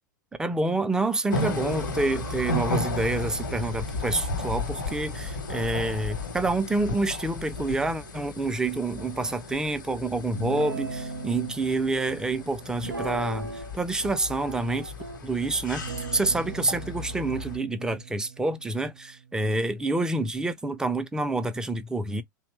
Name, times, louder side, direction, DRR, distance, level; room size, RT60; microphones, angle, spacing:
voice 1, 0.4-14.9 15.2-22.2, right 2 dB, 5° right, 0.3 m, -28 dB
sound 1, 1.3-17.6, left 2 dB, 70° left, 0.8 m, -34 dB
Guitar, 10.4-11.6 12.8-13.8 14.0-15.2 15.8-19.3, right 3 dB, 85° right, 0.5 m, -38 dB
2.8 x 2.0 x 2.9 m
figure-of-eight pair, 90°, 11 cm